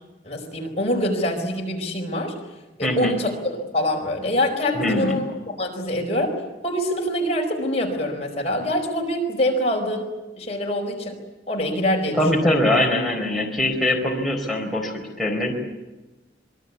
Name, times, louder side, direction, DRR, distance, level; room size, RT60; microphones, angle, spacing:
voice 1, 0.2-2.4 2.8-5.3 5.6-6.3 6.6-10.1 10.4-11.1 11.5-12.6, left 1 dB, 35° left, 1 dB, 4.7 m, -25 dB
voice 2, 2.8-3.1 4.7-5.2 12.1-15.6, left 1 dB, ahead, -3 dB, 4.5 m, -22 dB
26.5 x 22.5 x 8.4 m, 1.1 s
head